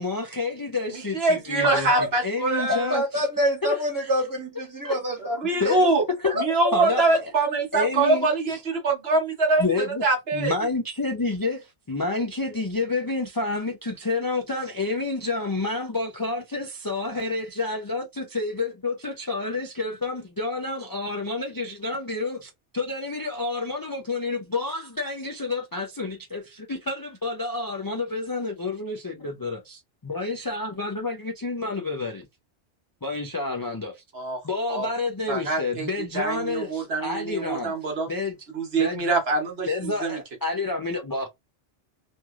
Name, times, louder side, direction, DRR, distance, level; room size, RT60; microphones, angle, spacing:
voice 1, 0.0-1.9 2.2-3.0 3.6-3.7 4.8-5.0 5.6-5.9 6.2-6.3 6.7-7.1 7.7-8.3 9.6-10.0 10.3-32.3 33.0-34.0 34.4-37.7 38.1-38.4 38.8-39.0 39.7-41.3, left 3 dB, 30° left, 0.4 m, -29 dB
voice 2, 0.9-3.0 5.4-6.0 6.3-10.5 34.1-34.4 34.7-34.9 35.3-35.9 36.1-38.1 38.5-40.2, right 3 dB, 65° right, 1.2 m, -24 dB
voice 3, 1.6-2.1 2.9-5.8 6.2-6.4 6.8-6.9, equal, 15° right, 1.2 m, -26 dB
3.0 x 2.6 x 2.3 m
omnidirectional pair, 1.2 m